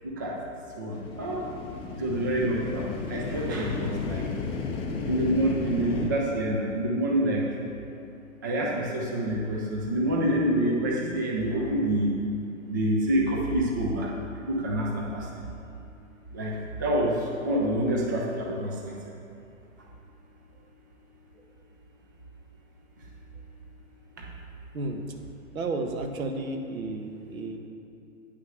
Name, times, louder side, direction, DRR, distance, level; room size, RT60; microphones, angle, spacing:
voice 1, 0.8-1.5 2.0-4.2 5.1-7.4 8.4-12.1 12.7-14.1 14.5-15.2 16.3-16.5 16.8-17.1 17.4-18.7, right 1 dB, 15° right, -1 dB, 0.3 m, -27 dB
sound 1, 0.9-6.1, left 4 dB, 15° left, 0.8 m, -33 dB
voice 2, 25.5-27.6, right 2 dB, 75° right, 5 dB, 1.3 m, -32 dB
9.7 x 6.3 x 6.3 m, 2.7 s
hypercardioid pair, 140°, 41 cm